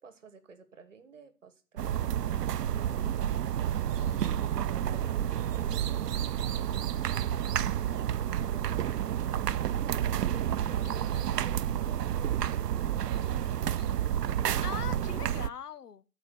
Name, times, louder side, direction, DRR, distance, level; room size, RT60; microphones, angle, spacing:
voice 1, 0.0-3.2 4.4-7.6 8.4-13.8, right 5 dB, 50° right, 1.4 m, -53 dB
sound 1, 1.8-15.5, right 10 dB, 80° right, 0.6 m, -30 dB
voice 2, 4.0-4.5 10.7-11.2 13.8-13.9 14.6-16.0, left 7 dB, 80° left, 0.9 m, -43 dB
8.9 x 5.0 x 6.9 m
hypercardioid pair, 175°, 47 cm